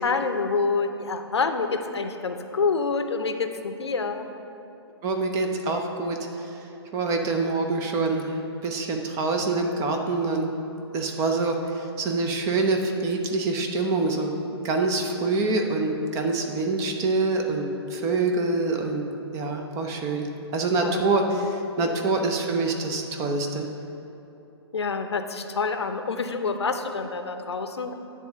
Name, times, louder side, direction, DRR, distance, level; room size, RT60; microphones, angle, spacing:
voice 1, 0.0-4.3 20.8-21.1 21.8-22.0 24.7-27.9, left 4 dB, 75° left, 7 dB, 0.6 m, -27 dB
voice 2, 5.0-6.2 6.9-8.4 8.6-10.5 10.9-14.3 14.6-19.0 19.3-23.7, right 3 dB, 20° right, 3 dB, 0.6 m, -25 dB
9.3 x 3.6 x 6.5 m, 2.9 s
figure-of-eight pair, 125°, 14 cm